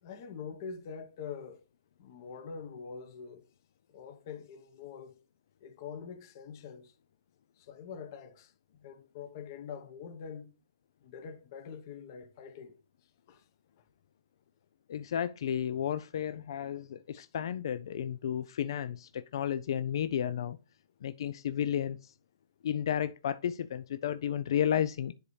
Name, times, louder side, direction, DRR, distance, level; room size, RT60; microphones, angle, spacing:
voice 1, 0.0-1.6 2.0-3.4 3.9-5.2 5.6-6.9 7.6-8.5 8.8-10.5 11.0-12.8 13.3-13.4 13.8-13.9 17.1-17.2, left 6 dB, 45° left, 1.0 m, -44 dB
voice 2, 14.9-20.6 21.0-22.1 22.6-25.1, left 9 dB, 60° left, 0.4 m, -32 dB
10.5 x 4.1 x 3.2 m
hypercardioid pair, 145°, 3 cm